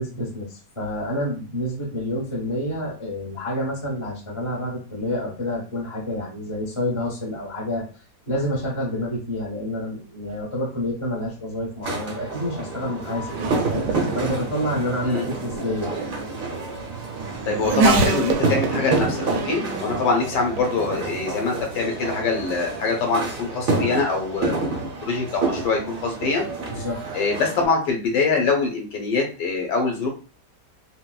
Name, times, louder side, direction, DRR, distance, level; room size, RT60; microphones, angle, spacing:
voice 1, 0.0-7.8 8.3-15.9 26.7-27.0, left 1 dB, 30° left, -3 dB, 0.6 m, -28 dB
Race car auto racing / Accelerating revving vroom, 11.4-27.6, right 4 dB, 80° right, 1.2 m, -30 dB
sound 1, 11.8-27.6, right 3 dB, 55° right, 0.6 m, -29 dB
voice 2, 17.4-24.5 25.0-26.4 27.1-30.1, left 4 dB, 80° left, 2 dB, 1.4 m, -24 dB
4.0 x 2.1 x 2.3 m, 0.37 s
omnidirectional pair, 1.9 m